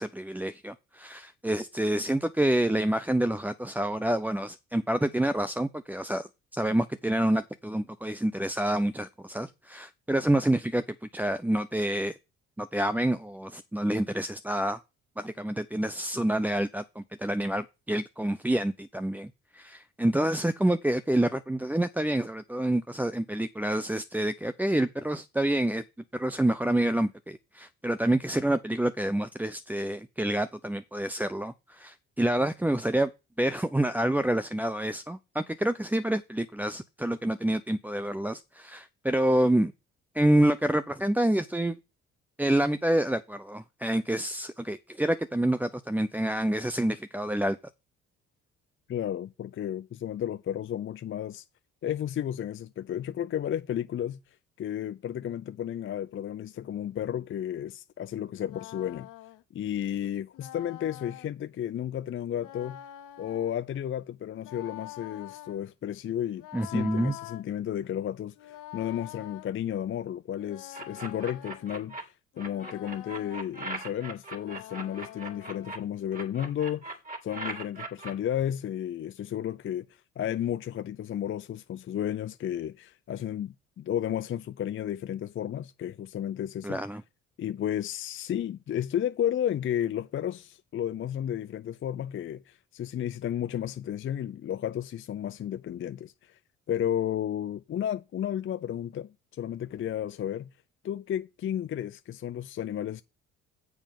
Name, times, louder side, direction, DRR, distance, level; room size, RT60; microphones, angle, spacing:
voice 1, 0.0-12.2 12.6-14.8 15.2-25.8 26.1-33.1 33.4-39.7 40.1-41.8 42.4-47.6 66.5-67.1 86.6-87.0, right 1 dB, 5° right, 0.6 m, -28 dB
voice 2, 48.9-51.4 51.8-54.2 54.6-59.1 59.5-62.8 63.2-77.0 77.2-79.9 80.2-86.8 87.4-96.4 96.7-100.5 100.8-103.0, left 10 dB, 35° left, 0.5 m, -33 dB
sound 1, 58.3-59.4 60.3-61.3 62.3-63.6 64.4-65.6 66.4-67.4 68.3-69.5 70.3-71.7 72.3-73.4 74.3-75.7, left 14 dB, 60° left, 1.0 m, -45 dB
sound 2, 70.7-72.0 72.4-75.8 76.1-78.1, right 3 dB, 25° right, 3.0 m, -39 dB
9.4 x 7.3 x 5.3 m
hypercardioid pair, 55°, 35 cm